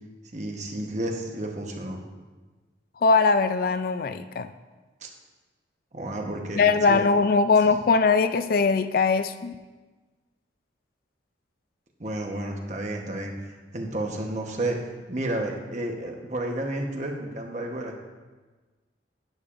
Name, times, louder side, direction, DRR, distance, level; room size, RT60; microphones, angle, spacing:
voice 1, 0.3-2.0 5.0-5.1 5.9-7.0 12.0-14.8 15.1-18.0, right 1 dB, 40° right, 2 dB, 1.1 m, -31 dB
voice 2, 3.0-4.5 6.5-9.5, left 4 dB, 50° left, 10 dB, 0.3 m, -21 dB
11.5 x 8.8 x 2.6 m, 1.3 s
head